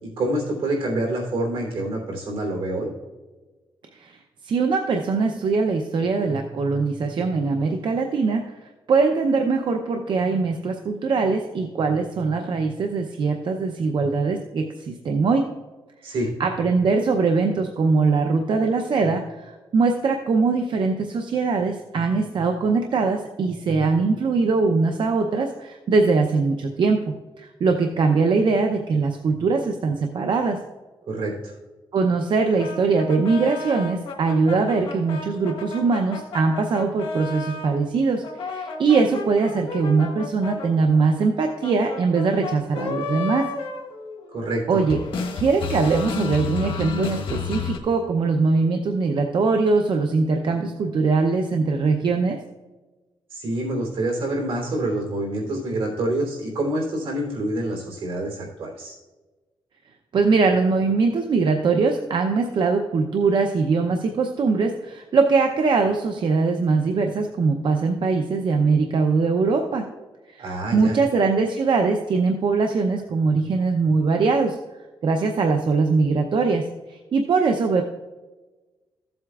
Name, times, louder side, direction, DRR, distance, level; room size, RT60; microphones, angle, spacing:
voice 1, 0.0-2.9 16.0-16.3 31.1-31.5 44.3-44.8 53.3-58.9 70.4-71.0, right 1 dB, 85° right, 0 dB, 3.2 m, -27 dB
voice 2, 4.4-8.5 8.9-15.5 16.0-16.1 16.4-27.0 27.4-30.6 31.9-43.5 44.7-45.0 45.4-52.4 60.1-69.9 70.3-74.6 75.0-77.8, right 4 dB, 65° right, 4 dB, 0.7 m, -22 dB
sound 1, 32.6-37.7 38.2-44.5 44.8-47.8, left 5 dB, 85° left, 1.2 m, -32 dB
15.0 x 7.9 x 2.4 m, 1.2 s
cardioid pair, 95°, 9 cm